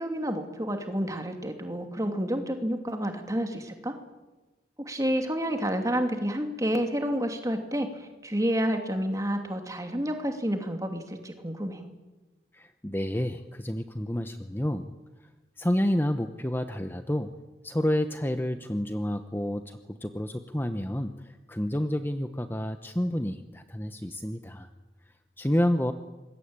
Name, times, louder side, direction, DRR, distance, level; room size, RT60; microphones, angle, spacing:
voice 1, 0.0-3.9 4.9-11.9, equal, 20° right, 5 dB, 2.8 m, -29 dB
voice 2, 12.5-15.3 15.6-17.3 17.6-24.7 25.1-25.9, left 1 dB, 10° left, 8 dB, 0.9 m, -29 dB
26.0 x 21.5 x 8.9 m, 1.2 s
head